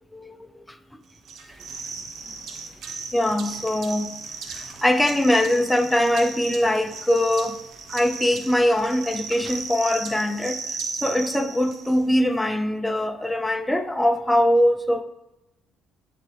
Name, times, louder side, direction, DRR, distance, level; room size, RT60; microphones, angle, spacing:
voice 1, 0.1-0.8 3.1-4.2 4.5-7.6 7.9-10.6 10.9-15.0, left 1 dB, 5° left, 0.5 m, -22 dB
sound 1, 1.3-12.2, right 5 dB, 60° right, 1.0 m, -36 dB
9.9 x 3.4 x 3.3 m
cardioid pair, 90°, 0 cm